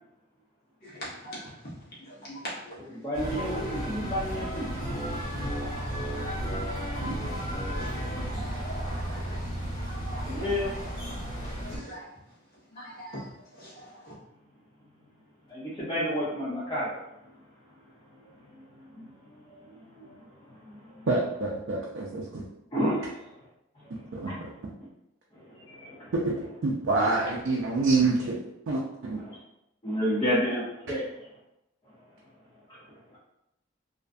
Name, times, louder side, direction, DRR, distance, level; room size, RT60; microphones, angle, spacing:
voice 1, 1.0-1.4 2.3-2.4 5.5-6.3 7.8-7.9 8.4-9.2 9.8-10.2 11.7-12.0 13.0-13.2, equal, 50° left, -7 dB, 0.9 m, -42 dB
voice 2, 2.9-4.7 10.3-10.7 15.5-17.0 18.4-18.6 18.9-21.1 22.7-23.3 23.8-23.9 24.2-24.5 25.3-26.1 29.2-29.4 29.8-31.3 32.7-33.2, equal, 25° left, -9 dB, 0.5 m, -32 dB
sound 1, 3.1-11.8, equal, 75° left, 1.0 m, -33 dB
voice 3, 21.1-22.4 24.1-24.5 26.1-26.3 26.6-28.3 28.7-29.2, right 3 dB, 65° right, -3 dB, 0.4 m, -27 dB
2.5 x 2.2 x 2.4 m, 0.86 s
head